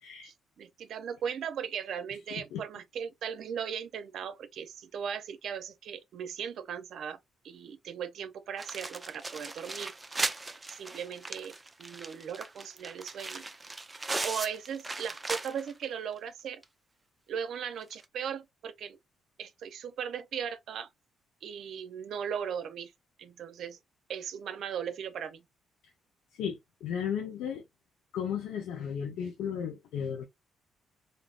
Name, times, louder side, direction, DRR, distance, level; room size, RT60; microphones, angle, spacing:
voice 1, 0.2-7.2 7.4-9.9 10.7-13.4 14.2-16.6 17.3-19.0 19.4-20.9 21.4-22.9 23.2-23.8 24.1-25.4, right 8 dB, 70° right, 0.6 m, -38 dB
voice 2, 2.3-2.6 26.3-27.6 28.1-30.2, left 8 dB, 90° left, 0.6 m, -35 dB
sound 1, 8.6-15.8 16.2-16.3 16.6-16.7 17.9-18.0, right 2 dB, 20° right, 0.5 m, -38 dB
3.5 x 2.6 x 2.4 m
cardioid pair, 90°, 0 cm